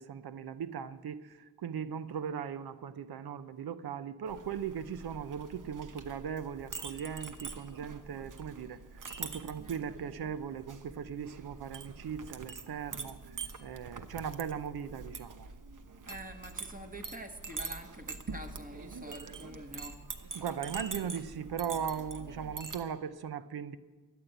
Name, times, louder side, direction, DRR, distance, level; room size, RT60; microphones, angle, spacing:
voice 1, 0.0-8.8 9.2-15.5 20.3-23.8, right 7 dB, 85° right, 0.7 m, -38 dB
Chink clink, 4.3-22.8, right 4 dB, 60° right, 1.1 m, -45 dB
voice 2, 16.0-20.0 21.0-21.1, equal, 25° right, 1.6 m, -46 dB
13.5 x 9.6 x 8.0 m
cardioid pair, 60°, 36 cm